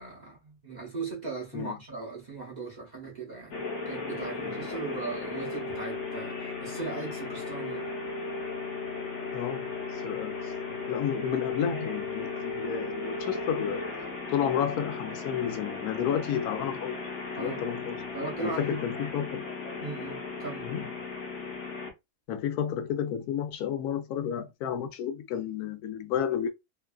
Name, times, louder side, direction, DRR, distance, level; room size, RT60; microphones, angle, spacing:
voice 1, 0.0-3.6 3.8-7.9 17.3-17.6 18.1-18.8 19.8-20.7, right 4 dB, 40° right, 0.6 m, -38 dB
sound 1, 3.5-21.9, left 4 dB, 55° left, 1.1 m, -36 dB
voice 2, 9.3-9.6 9.9-13.8 14.3-17.0 17.4-18.0 18.4-19.4 20.6-20.9 22.3-26.5, left 9 dB, 90° left, 1.1 m, -31 dB
2.9 x 2.3 x 2.3 m
omnidirectional pair, 1.6 m